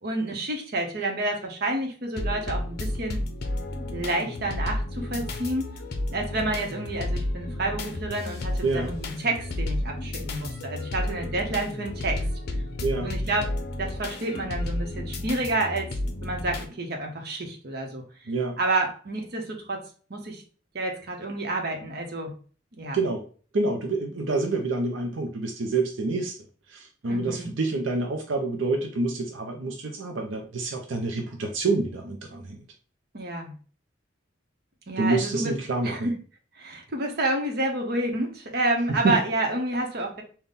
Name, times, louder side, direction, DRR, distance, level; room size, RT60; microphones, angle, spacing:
voice 1, 0.0-3.2 3.9-5.6 6.1-12.2 13.0-13.5 13.8-16.0 16.2-18.0 18.6-19.8 20.1-20.4 20.7-22.3 22.7-23.0 27.1-27.5 32.3-32.4 33.1-33.5 34.9-35.5 35.8-36.1 36.6-40.2, right 2 dB, 55° right, 2 dB, 0.9 m, -29 dB
sound 1, 2.2-16.7, left 1 dB, 55° left, 0.6 m, -32 dB
voice 2, 8.6-9.0 12.8-13.1 18.3-18.6 22.9-23.3 23.5-26.4 26.7-32.6 35.0-36.1 38.9-39.2, right 3 dB, 85° right, 2 dB, 0.6 m, -27 dB
4.0 x 2.2 x 3.5 m, 0.40 s
head